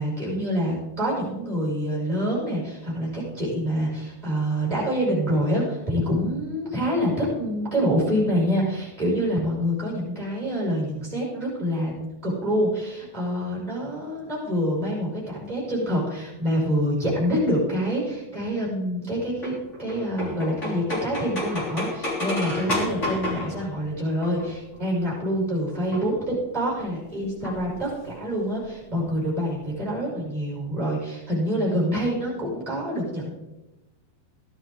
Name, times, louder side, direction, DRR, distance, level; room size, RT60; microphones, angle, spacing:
voice 1, 0.0-11.9 12.2-19.5 19.8-33.3, equal, 10° right, -5 dB, 5.5 m, -26 dB
sound 1, 19.4-24.8 25.7-26.2 27.4-28.1 28.4-28.5 28.7-28.8 29.0-29.4, left 2 dB, 20° left, 3.2 m, -31 dB
16.0 x 11.5 x 3.9 m, 1.0 s
omnidirectional pair, 4.5 m